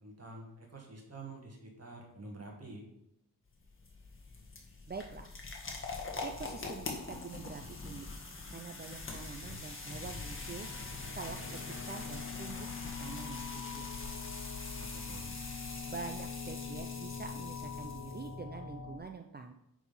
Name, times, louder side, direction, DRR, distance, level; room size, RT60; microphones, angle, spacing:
voice 1, 0.0-2.8 14.7-15.3, right 2 dB, 45° right, 0 dB, 2.0 m, -48 dB
sound 1, 3.5-18.3, left 3 dB, 35° left, 1.6 m, -44 dB
voice 2, 4.9-5.3 6.2-8.1 8.5-10.7 11.1-13.9 15.9-19.5, right 4 dB, 30° right, 5 dB, 0.5 m, -45 dB
sound 2, 9.7-19.0, left 6 dB, 65° left, 0.8 m, -44 dB
9.8 x 4.8 x 5.5 m, 0.81 s
wide cardioid pair, 170°, 35 cm